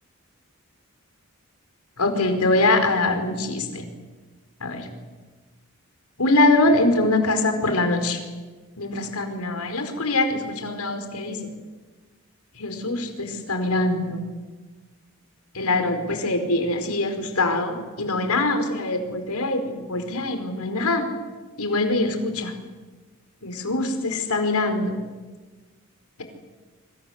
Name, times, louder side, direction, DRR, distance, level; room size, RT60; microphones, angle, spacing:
voice 1, 2.0-3.9 4.6-4.9 6.2-8.2 8.8-11.4 12.6-14.2 15.5-21.1 21.6-22.5 23.4-25.0, left 2 dB, 90° left, 6 dB, 4.8 m, -23 dB
27.5 x 25.5 x 8.0 m, 1.3 s
head